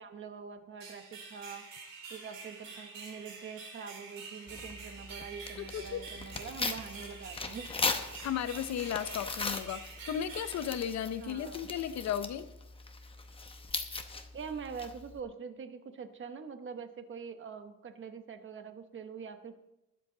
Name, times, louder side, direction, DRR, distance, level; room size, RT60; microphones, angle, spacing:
voice 1, 0.0-1.6 2.1-7.7 11.2-11.7 14.3-19.5, right 6 dB, 35° right, 8 dB, 1.0 m, -44 dB
sound 1, 0.8-11.5, right 4 dB, 70° right, 3.9 m, -48 dB
Tearing, 4.5-15.2, left 3 dB, 15° left, 0.8 m, -39 dB
voice 2, 5.6-6.0 8.2-12.5, left 9 dB, 50° left, 12 dB, 0.7 m, -35 dB
20.5 x 7.7 x 3.9 m, 0.90 s
cardioid pair, 175°, 35 cm